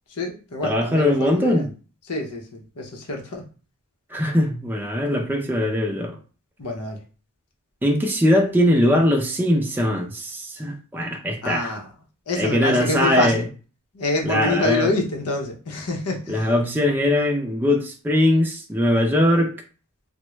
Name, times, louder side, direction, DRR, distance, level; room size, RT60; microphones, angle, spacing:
voice 1, 0.1-1.6 2.1-3.5 6.6-7.0 11.4-11.9 12.3-13.4 13.9-16.5, left 2 dB, 85° left, 2 dB, 0.9 m, -26 dB
voice 2, 0.6-1.7 4.1-6.2 7.8-11.8 12.4-13.4 14.2-14.9 16.3-19.5, left 1 dB, 10° right, 0 dB, 0.5 m, -21 dB
3.6 x 2.1 x 3.1 m, 0.36 s
head